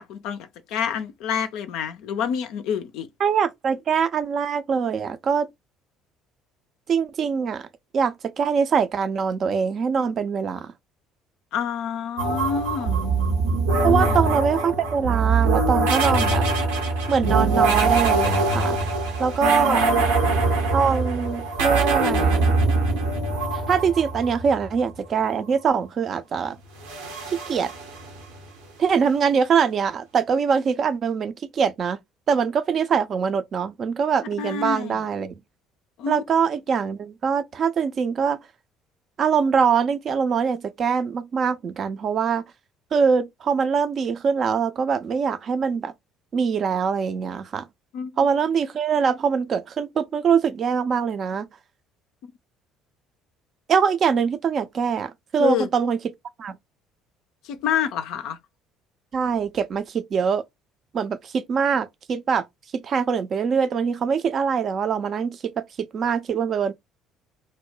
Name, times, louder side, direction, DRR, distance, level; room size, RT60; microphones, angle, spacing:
voice 1, 0.0-3.1 11.5-13.0 13.8-14.4 19.4-20.0 34.4-35.0 36.0-36.2 47.9-48.1 55.4-55.7 57.4-58.4, left 7 dB, 65° left, 0.3 m, -28 dB
voice 2, 3.2-5.5 6.9-7.7 7.9-10.7 13.8-16.5 17.1-18.8 19.2-19.9 20.7-22.5 23.5-26.6 27.3-27.7 28.8-32.0 32.3-35.3 36.1-38.4 39.2-42.4 42.9-45.9 46.3-47.6 48.2-51.5 53.7-56.0 56.4-56.6 59.1-60.4 60.9-62.4 62.7-65.6 65.9-66.7, right 6 dB, 45° right, 0.4 m, -23 dB
sound 1, 12.2-24.7 26.8-28.4, right 3 dB, 75° right, 0.7 m, -23 dB
2.6 x 2.0 x 3.1 m
figure-of-eight pair, 55°, 0 cm